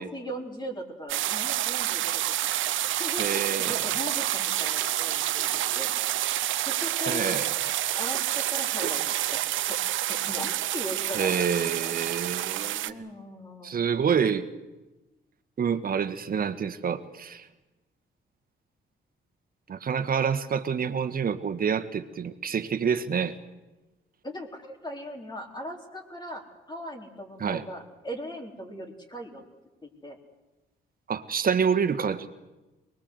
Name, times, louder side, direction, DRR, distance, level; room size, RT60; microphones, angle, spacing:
voice 1, 0.0-2.2 2.5-2.7 3.0-5.9 6.7-7.4 7.9-9.8 10.1-11.4 11.7-11.9 12.8-14.1 19.7-19.8 24.2-29.4 29.8-30.2, equal, 20° left, 1 dB, 3.8 m, -39 dB
sound 1, 1.1-12.9, right 13 dB, 75° right, 0.8 m, -28 dB
voice 2, 3.2-3.8 7.1-7.5 11.1-13.1 13.6-14.5 15.6-17.5 19.7-23.3 27.4-27.6 31.1-32.3, right 7 dB, 45° right, 11 dB, 1.6 m, -27 dB
23.5 x 21.0 x 8.0 m, 1.1 s
cardioid pair, 90°, 20 cm